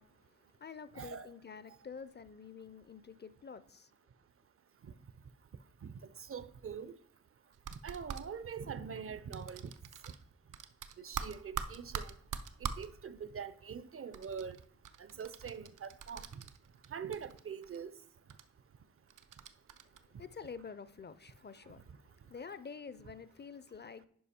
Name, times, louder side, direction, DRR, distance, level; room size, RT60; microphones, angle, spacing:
voice 1, 0.0-3.9 19.8-24.1, left 5 dB, 35° left, 0.4 m, -49 dB
voice 2, 1.0-1.3 6.3-6.9 7.8-9.6 11.0-12.1 12.8-14.6 15.0-16.3 16.9-17.9, right 6 dB, 45° right, 0.5 m, -43 dB
sound 1, 7.5-8.2 9.3-10.2 10.5-12.9 14.1-16.9 17.1-17.8 18.3-18.4 19.1-20.0, right 7 dB, 90° right, 0.6 m, -42 dB
10.0 x 5.1 x 4.3 m
wide cardioid pair, 95°, 30 cm